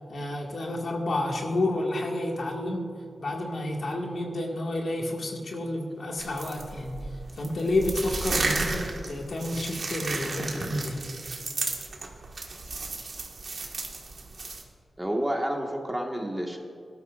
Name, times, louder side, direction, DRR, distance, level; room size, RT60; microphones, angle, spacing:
voice 1, 0.1-2.9 3.2-7.0 7.4-11.1, left 1 dB, 70° left, 0 dB, 1.8 m, -30 dB
sound 1, 6.2-14.6, right 3 dB, 55° right, 1.5 m, -33 dB
voice 2, 15.0-16.6, right 1 dB, 10° right, 1 dB, 1.5 m, -29 dB
18.0 x 12.5 x 2.4 m, 2.3 s
wide cardioid pair, 90°, 0 cm